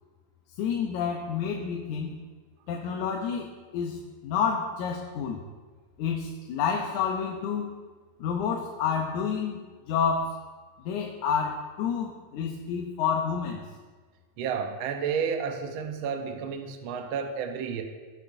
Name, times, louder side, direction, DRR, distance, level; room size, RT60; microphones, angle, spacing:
voice 1, 0.6-2.2 2.7-5.4 6.0-7.7 8.2-10.4 10.9-13.6, left 6 dB, 85° left, 1 dB, 2.2 m, -29 dB
voice 2, 14.4-17.8, right 6 dB, 85° right, 5 dB, 1.1 m, -31 dB
18.5 x 6.2 x 2.6 m, 1.4 s
omnidirectional pair, 3.4 m